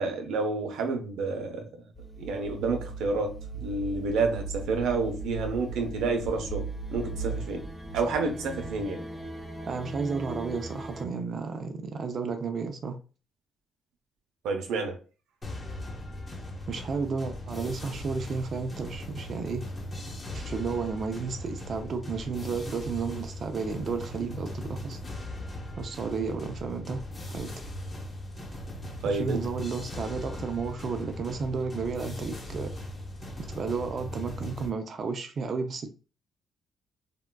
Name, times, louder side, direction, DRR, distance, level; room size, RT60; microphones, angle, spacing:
voice 1, 0.0-1.8 2.2-7.7 7.9-9.0 14.4-15.0 29.0-29.4, right 3 dB, 85° right, 0.7 m, -29 dB
sound 1, 1.9-11.0, right 3 dB, 5° left, 0.5 m, -38 dB
voice 2, 9.7-13.0 16.7-19.7 20.3-25.0 25.8-27.5 29.0-32.7 33.5-35.9, right 5 dB, 50° right, 0.5 m, -32 dB
sound 2, 15.4-34.7, left 1 dB, 30° left, 1.0 m, -39 dB
3.6 x 2.2 x 2.2 m
cardioid pair, 90°, 0 cm